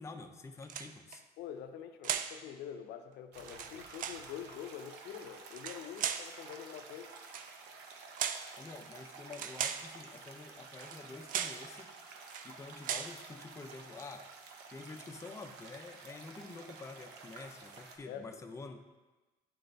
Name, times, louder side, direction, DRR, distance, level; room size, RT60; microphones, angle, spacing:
voice 1, 0.0-1.2 8.6-11.9 12.4-14.3 14.7-18.8, left 3 dB, 15° left, 4 dB, 0.5 m, -48 dB
sound 1, 0.6-1.2 2.0-2.4 3.4-4.3 5.5-6.3 7.2-7.5 8.2-8.5 9.3-9.9 10.8-11.0 11.3-11.7 12.2-12.5 12.8-13.2, right 9 dB, 55° right, 0.4 m, -37 dB
voice 2, 1.4-7.1 18.1-18.3, left 9 dB, 75° left, 7 dB, 0.5 m, -45 dB
sound 2, 3.3-18.0, right 4 dB, 85° right, 0.7 m, -51 dB
8.7 x 3.9 x 3.3 m, 1.2 s
cardioid pair, 110°, 17 cm